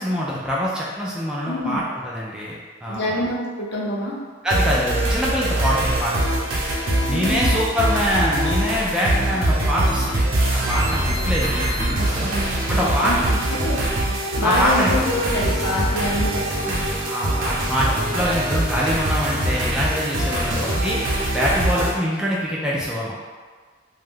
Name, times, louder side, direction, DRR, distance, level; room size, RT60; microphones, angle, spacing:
voice 1, 0.0-3.2 4.4-6.2 7.1-10.2 10.7-12.3 12.7-13.3 14.4-14.9 17.1-21.0 21.3-23.1, equal, 5° right, -6 dB, 0.3 m, -24 dB
voice 2, 1.4-1.8 2.9-4.2 7.1-7.5 11.8-13.8 14.4-16.9, left 1 dB, 60° left, -5 dB, 0.7 m, -26 dB
sound 1, 4.5-21.9, right 1 dB, 80° right, 0.7 m, -23 dB
2.5 x 2.3 x 3.4 m, 1.5 s
head